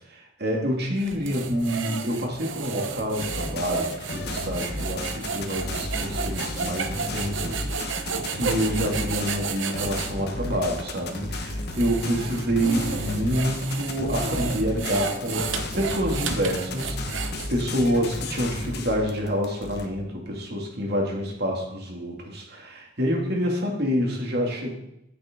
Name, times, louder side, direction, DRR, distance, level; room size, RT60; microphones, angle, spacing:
voice 1, 0.1-24.7, equal, 55° right, 0 dB, 2.5 m, -27 dB
sound 1, 1.0-10.1 10.8-10.9 11.5-17.8, right 5 dB, 80° right, 0.9 m, -32 dB
sound 2, 3.2-19.9, left 2 dB, 55° left, 1.3 m, -33 dB
10.5 x 9.1 x 3.8 m, 0.81 s
head